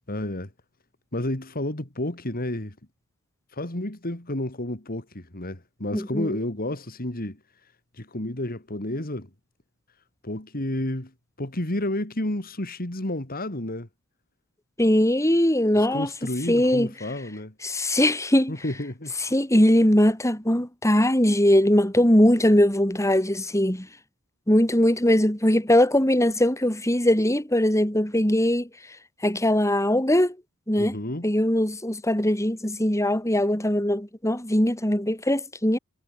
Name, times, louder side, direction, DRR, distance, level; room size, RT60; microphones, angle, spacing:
voice 1, 0.1-0.5 1.1-2.7 3.5-7.4 7.9-9.3 10.2-11.1 11.4-13.9 15.7-17.5 18.5-19.1 30.8-31.3, left 1 dB, 40° left, 3.0 m, -31 dB
voice 2, 5.9-6.4 14.8-16.1 16.5-16.9 17.6-18.5 19.3-23.9 24.5-28.7 29.2-30.4 30.7-31.0 31.2-35.8, left 1 dB, 15° left, 4.4 m, -21 dB
head